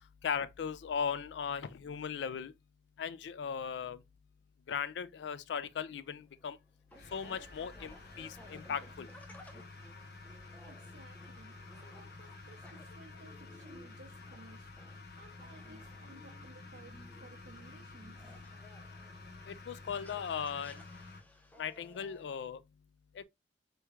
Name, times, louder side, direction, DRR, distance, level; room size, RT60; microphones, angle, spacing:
voice 1, 0.2-2.5 3.0-4.0 4.7-6.6 7.1-9.1 19.7-20.8 21.6-22.6 23.2-23.3, left 7 dB, 80° left, 0.3 m, -37 dB
sound 1, 5.7-22.3, left 1 dB, 10° left, 0.4 m, -58 dB
sound 2, 6.9-21.2, left 3 dB, 60° left, 0.7 m, -51 dB
voice 2, 10.6-14.7 15.1-18.2, right 2 dB, 80° right, 0.7 m, -57 dB
3.3 x 3.1 x 2.3 m
head